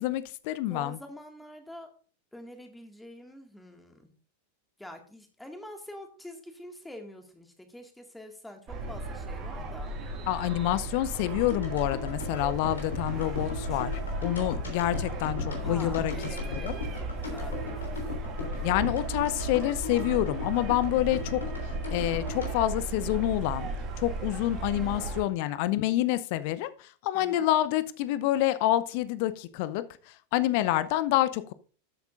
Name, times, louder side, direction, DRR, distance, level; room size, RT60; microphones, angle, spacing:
voice 1, 0.0-1.0 10.3-16.1 16.5-16.8 18.6-23.7 24.0-29.8 30.3-31.5, left 14 dB, 45° left, 0.7 m, -28 dB
voice 2, 0.7-1.9 2.3-4.1 4.8-9.9 15.6-17.8 24.7-25.4 27.1-27.5, left 1 dB, 5° left, 2.1 m, -46 dB
sound 1, 8.7-25.2, right 3 dB, 35° right, 2.3 m, -35 dB
sound 2, 11.5-23.7 23.9-24.0, left 3 dB, 70° left, 3.5 m, -38 dB
13.0 x 8.1 x 2.6 m
figure-of-eight pair, 90°, 0 cm